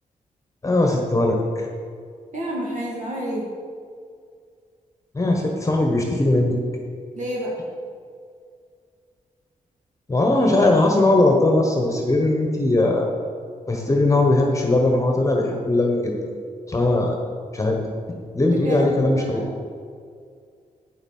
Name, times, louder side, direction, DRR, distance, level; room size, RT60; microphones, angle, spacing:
voice 1, 0.6-1.7 5.1-6.5 10.1-13.1 13.7-16.2 16.7-17.2 17.5-17.8 18.3-19.4, left 2 dB, 20° left, 1 dB, 1.2 m, -19 dB
voice 2, 2.3-3.5 7.1-7.6 18.6-19.4, equal, 60° right, -3 dB, 1.9 m, -29 dB
8.9 x 7.2 x 5.6 m, 2.1 s
cardioid pair, 95°, 14 cm